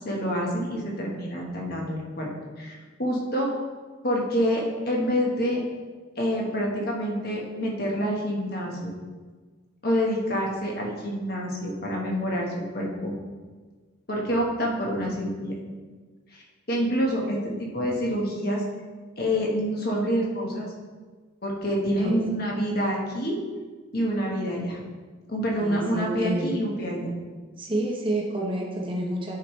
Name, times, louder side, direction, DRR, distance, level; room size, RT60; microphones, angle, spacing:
voice 1, 0.0-2.3 2.6-3.6 4.0-5.6 6.2-8.9 9.8-13.1 14.1-15.5 16.7-18.6 19.2-20.7 21.4-23.4 23.9-24.8 25.3-27.1, equal, 50° left, -2 dB, 1.4 m, -27 dB
voice 2, 22.0-22.4 25.6-26.6 27.6-29.4, right 1 dB, 25° right, -1 dB, 1.0 m, -29 dB
9.8 x 4.9 x 3.2 m, 1.4 s
head